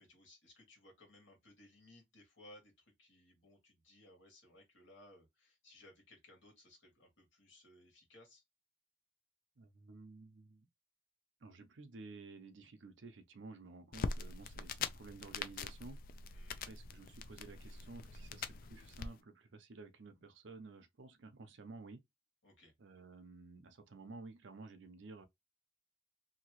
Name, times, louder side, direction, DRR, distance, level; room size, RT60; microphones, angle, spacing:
voice 1, 0.0-8.4 16.3-16.7 22.4-22.7, left 1 dB, 80° left, 1.7 m, -62 dB
voice 2, 9.6-10.7 11.4-16.0 16.5-22.0 22.8-25.3, right 3 dB, 80° right, 0.6 m, -53 dB
sound 1, 13.9-19.1, left 5 dB, 50° left, 0.3 m, -43 dB
2.8 x 2.8 x 2.9 m
head